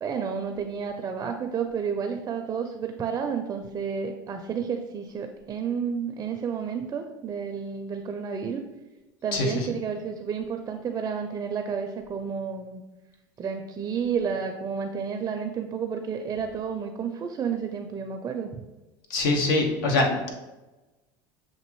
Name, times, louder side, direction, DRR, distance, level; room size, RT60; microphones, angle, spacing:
voice 1, 0.0-8.6 9.2-12.8 13.4-18.6, right 6 dB, 30° right, 5 dB, 0.4 m, -31 dB
voice 2, 9.3-9.7 19.1-20.3, left 2 dB, 80° left, 2 dB, 0.9 m, -24 dB
6.8 x 2.6 x 3.0 m, 1.1 s
supercardioid pair, 95°, 11 cm